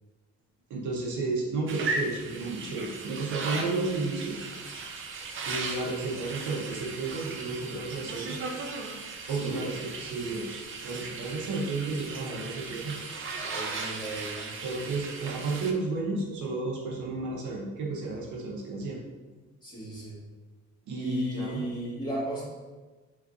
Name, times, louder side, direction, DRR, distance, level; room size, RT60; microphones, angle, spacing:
voice 1, 0.7-4.3 5.5-8.4 9.3-10.5 10.8-13.0 14.6-19.0 20.9-21.6, right 3 dB, 80° right, -2 dB, 0.7 m, -32 dB
sound 1, 1.7-15.7, right 3 dB, 45° right, 0.4 m, -37 dB
voice 2, 9.3-9.7 13.4-14.5 19.6-20.2 21.0-22.4, equal, 15° left, -7 dB, 1.2 m, -35 dB
3.6 x 2.5 x 2.4 m, 1.3 s
cardioid pair, 90°, 30 cm